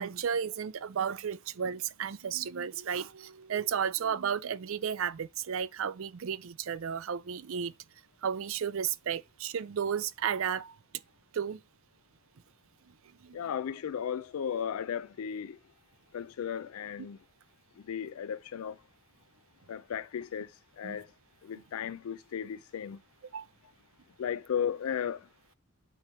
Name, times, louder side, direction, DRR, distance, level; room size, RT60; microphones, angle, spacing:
voice 1, 0.0-7.7 8.2-10.7 11.3-11.6 13.2-13.4 20.8-21.0 23.3-23.5, right 7 dB, 65° right, 0.4 m, -33 dB
voice 2, 13.3-15.6 16.1-17.2 17.8-18.8 19.7-20.5 20.8-21.1 21.4-23.0 24.2-25.3, left 8 dB, 75° left, 0.4 m, -35 dB
8.8 x 3.1 x 5.5 m
head